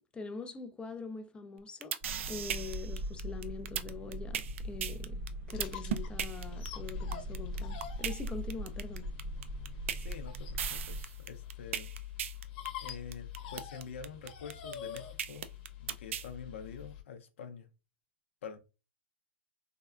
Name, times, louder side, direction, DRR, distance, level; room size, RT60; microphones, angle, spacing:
voice 1, 0.1-2.0 2.3-5.2 5.5-9.1, left 4 dB, 15° left, 0.4 m, -43 dB
sound 1, 1.6-16.3, right 9 dB, 75° right, 0.4 m, -37 dB
sound 2, 2.0-11.0, equal, 40° right, 0.6 m, -40 dB
sound 3, 5.5-17.0, left 10 dB, 50° left, 0.8 m, -46 dB
voice 2, 10.0-11.9 12.8-15.5 15.8-17.7 18.4-18.6, left 6 dB, 75° left, 0.5 m, -46 dB
3.5 x 2.2 x 2.3 m
hypercardioid pair, 120°, 7 cm